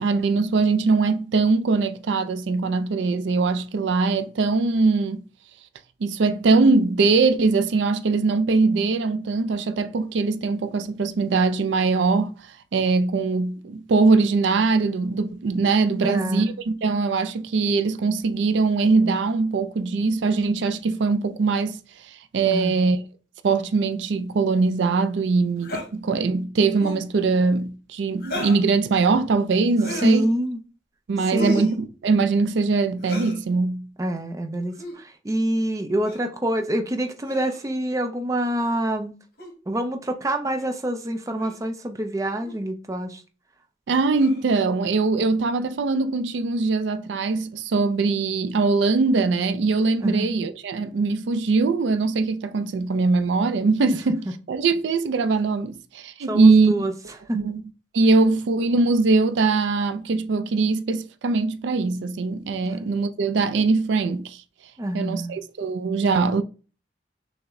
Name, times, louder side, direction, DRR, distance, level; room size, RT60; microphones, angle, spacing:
voice 1, 0.0-5.2 6.0-12.3 12.7-21.8 22.3-23.0 23.4-30.3 31.1-33.9 43.9-54.2 54.5-56.7 57.3-57.6 57.9-64.4 64.9-66.4, right 4 dB, 85° right, 0.4 m, -21 dB
voice 2, 16.0-16.6 22.5-22.8 29.9-30.6 31.3-31.7 34.0-39.2 39.7-43.2 50.0-50.3 56.3-56.9 57.3-57.4 62.6-62.8 64.8-65.3, right 1 dB, 20° right, 0.4 m, -26 dB
sound 1, 25.6-25.9 26.7-27.1 28.2-28.7 29.8-30.2 31.3-31.8 33.0-33.4 34.7-35.0 36.0-36.3 37.2-37.7 39.4-39.5 40.6-40.7 41.4-41.6 42.4-42.6 44.1-44.5, equal, 55° left, 1.3 m, -34 dB
5.8 x 2.1 x 3.6 m
head